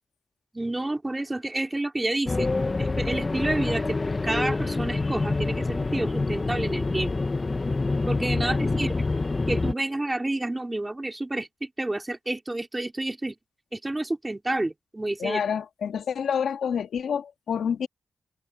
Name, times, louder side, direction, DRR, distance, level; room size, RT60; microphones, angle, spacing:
voice 1, 0.5-2.5 2.8-4.0 4.2-7.1 8.1-8.9 9.5-13.4 13.7-15.4, right 2 dB, 20° right, 3.9 m, -29 dB
sound 1, 2.3-9.7, left 3 dB, 30° left, 1.3 m, -26 dB
voice 2, 15.2-17.9, left 7 dB, 85° left, 1.8 m, -28 dB
open air
cardioid pair, 85°, 0 cm